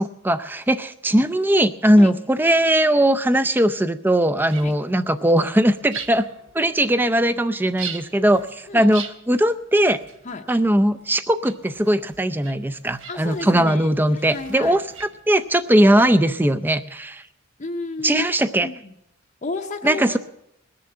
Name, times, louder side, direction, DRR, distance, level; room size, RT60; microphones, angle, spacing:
voice 1, 0.0-6.3 6.5-10.0 10.5-17.2 18.0-18.7 19.8-20.2, right 1 dB, 10° right, 11 dB, 0.4 m, -19 dB
sound 1, 4.4-16.1, right 7 dB, 65° right, 1.1 m, -42 dB
voice 2, 13.1-14.8 17.6-18.3 18.6-19.0 19.4-20.2, left 3 dB, 35° left, 2 dB, 0.7 m, -32 dB
20.5 x 6.9 x 7.7 m, 0.81 s
head